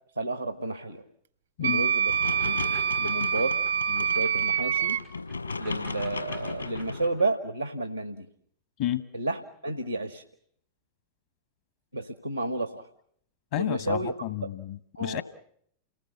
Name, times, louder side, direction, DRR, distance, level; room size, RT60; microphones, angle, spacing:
voice 1, 0.2-1.0 1.6-2.1 2.4-2.6 3.0-3.6 3.9-5.0 5.6-8.3 9.1-10.2 11.9-12.9 13.6-14.1 14.4-14.5 14.9-15.2, right 2 dB, 90° right, 8 dB, 1.4 m, -31 dB
Wind instrument woodwind instrument, 1.6-5.0, right 8 dB, 70° right, 1.0 m, -26 dB
sound 1, 2.1-7.1, left 3 dB, 80° left, 6.0 m, -36 dB
voice 2, 13.5-15.2, left 13 dB, 55° left, 12 dB, 1.1 m, -31 dB
29.0 x 19.5 x 6.8 m, 0.67 s
figure-of-eight pair, 90°, 0 cm